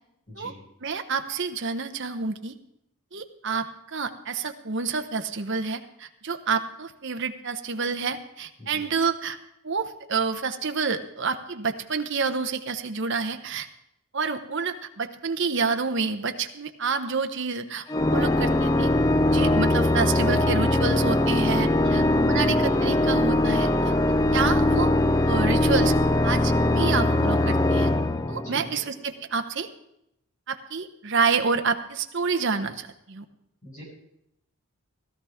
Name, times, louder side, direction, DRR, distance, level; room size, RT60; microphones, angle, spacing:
voice 1, 0.3-0.6 8.6-8.8 21.8-22.0 28.4-28.8 33.6-33.8, equal, 35° left, -5 dB, 5.4 m, -43 dB
voice 2, 0.8-2.6 3.1-9.4 9.6-13.7 14.1-17.8 18.1-18.9 19.3-23.7 24.3-24.9 25.3-25.9 26.2-27.9 28.3-29.7 30.5-33.2, right 5 dB, 55° right, 7 dB, 0.9 m, -28 dB
Organ, 17.9-28.8, left 1 dB, 15° left, 0.4 m, -21 dB
16.0 x 13.0 x 3.6 m, 0.81 s
head